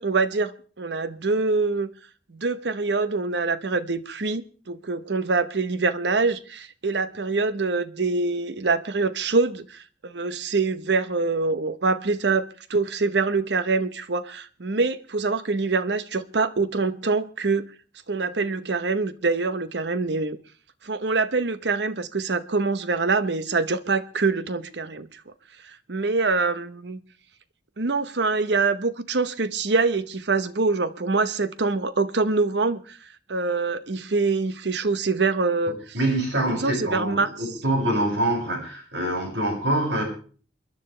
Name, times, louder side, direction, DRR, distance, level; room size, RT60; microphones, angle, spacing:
voice 1, 0.0-1.9 2.3-17.7 18.1-20.4 20.8-25.2 25.6-27.0 27.8-33.0 33.3-36.0 36.5-37.3, right 3 dB, 70° right, 0.9 m, -25 dB
voice 2, 35.9-40.0, right 1 dB, 85° right, 6.8 m, -25 dB
28.0 x 11.0 x 3.3 m
head